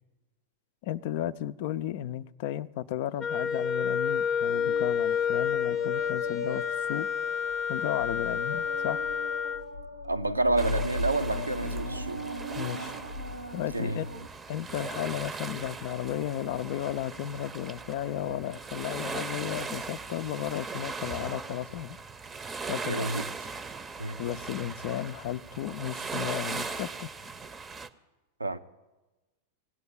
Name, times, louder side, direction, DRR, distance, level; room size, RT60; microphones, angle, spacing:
voice 1, 0.8-7.1 7.7-9.0 12.6-13.0 13.5-14.1 14.5-22.0 22.7-23.1 24.2-27.1, left 12 dB, 50° left, 0.5 m, -34 dB
Wind instrument woodwind instrument, 3.2-9.7, left 7 dB, 20° left, 0.8 m, -29 dB
sound 1, 4.5-14.3, left 1 dB, 85° left, 0.7 m, -38 dB
voice 2, 10.1-12.3 13.7-14.0 22.8-23.5 24.0-24.2 28.4-28.6, right 2 dB, 85° right, 0.7 m, -29 dB
sound 2, 10.6-27.9, right 4 dB, 15° right, 0.7 m, -39 dB
18.0 x 8.5 x 8.9 m
figure-of-eight pair, 90°, 0 cm